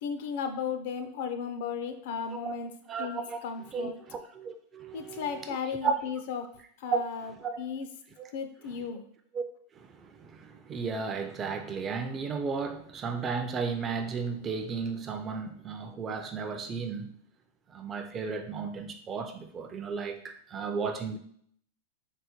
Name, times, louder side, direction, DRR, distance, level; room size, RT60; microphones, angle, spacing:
voice 1, 0.0-2.7 3.0-4.0 4.9-6.5 6.8-7.3 7.6-7.9 8.3-9.1, left 6 dB, 60° left, 0.5 m, -35 dB
voice 2, 2.9-3.4 3.7-5.5 5.8-5.9 6.9-7.0 7.4-7.6 8.2-8.3 9.3-9.4 9.7-17.2 17.7-21.2, right 5 dB, 20° right, 0.4 m, -34 dB
3.8 x 2.1 x 4.3 m
supercardioid pair, 150°, 0 cm